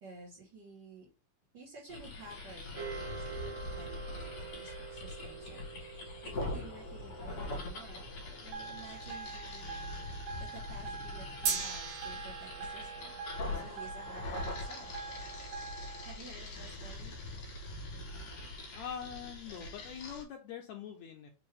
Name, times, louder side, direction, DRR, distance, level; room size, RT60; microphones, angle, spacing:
voice 1, 0.0-1.1 1.5-4.3 4.5-8.0 8.4-9.7 10.4-13.2 13.5-14.9 16.0-17.1, right 2 dB, 50° right, -6 dB, 1.4 m, -52 dB
sound 1, 1.9-20.2, left 2 dB, 60° left, 2.2 m, -43 dB
sound 2, 2.7-9.2 11.5-15.9, right 5 dB, 70° right, 2.9 m, -43 dB
sound 3, 8.5-16.1, right 5 dB, 90° right, 2.3 m, -45 dB
voice 2, 18.7-21.3, left 8 dB, 85° left, 3 dB, 1.6 m, -43 dB
5.4 x 2.5 x 3.3 m, 0.31 s
omnidirectional pair, 3.7 m